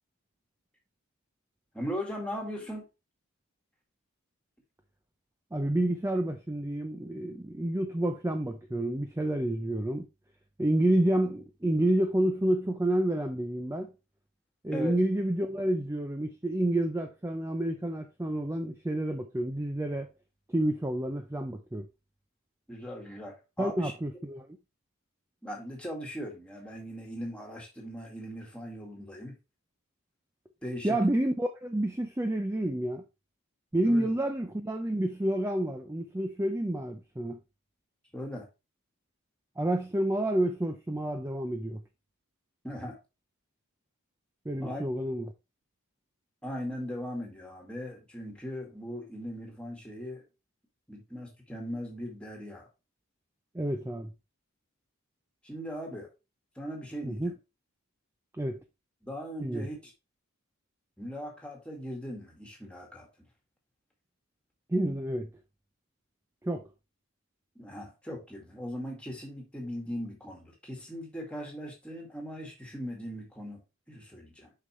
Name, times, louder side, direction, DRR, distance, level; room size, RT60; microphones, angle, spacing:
voice 1, 1.7-2.9 14.7-15.0 22.7-23.9 25.4-29.4 30.6-31.0 33.8-34.1 38.1-38.5 42.6-43.0 44.6-44.8 46.4-50.2 50.9-52.7 55.4-56.1 56.6-57.3 59.0-59.9 61.0-63.1 67.6-73.6 73.9-74.5, equal, 5° left, 1.9 m, -39 dB
voice 2, 5.5-10.1 10.6-13.9 14.6-20.1 20.5-21.9 23.6-24.5 30.8-33.0 33.7-37.4 39.6-41.8 44.5-45.2 53.5-54.1 57.0-57.3 58.4-58.6 59.4-59.7 64.7-65.3 66.4-66.7, right 1 dB, 10° right, 0.5 m, -29 dB
6.6 x 5.4 x 3.1 m
head